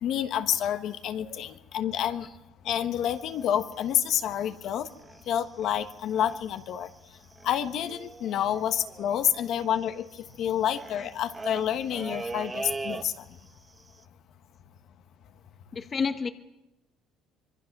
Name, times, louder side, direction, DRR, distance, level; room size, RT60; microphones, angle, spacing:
voice 1, 0.0-2.3 2.6-4.9 5.3-6.9 7.4-10.1 10.4-13.2, left 10 dB, 55° left, 1.3 m, -28 dB
sound 1, 3.0-5.3 5.6-5.8 6.1-6.6 6.9-7.0 7.1-13.5 13.8-14.0, right 3 dB, 15° right, 0.9 m, -41 dB
voice 2, 15.7-16.3, left 5 dB, 30° left, 1.0 m, -30 dB
25.5 x 22.5 x 6.1 m
cardioid pair, 145°, 0 cm